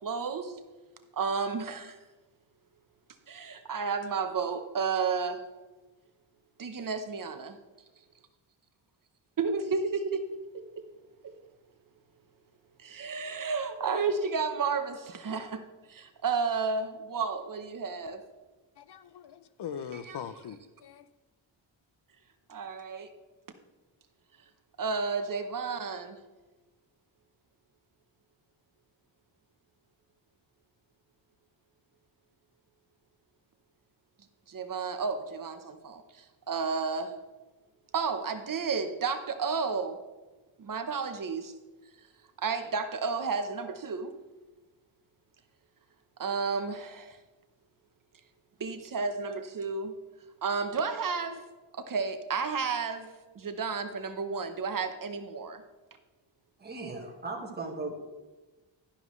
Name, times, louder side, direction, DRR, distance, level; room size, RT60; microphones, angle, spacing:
voice 1, 0.0-0.6 1.1-2.0 3.3-5.4 6.6-7.6 9.4-10.2 11.2-11.3 12.8-15.6 15.9-18.2 20.1-20.2 22.5-23.1 24.8-26.2 34.5-37.1 37.9-40.0 40.6-41.5 42.4-44.1 46.2-47.2 48.6-49.9 50.4-51.4 51.7-55.6, right 5 dB, 45° right, 0.9 m, -32 dB
voice 2, 18.8-21.1, left 8 dB, 60° left, 0.7 m, -41 dB
voice 3, 56.6-58.0, right 3 dB, 20° right, 1.7 m, -37 dB
11.5 x 10.5 x 3.2 m
wide cardioid pair, 160°, 47 cm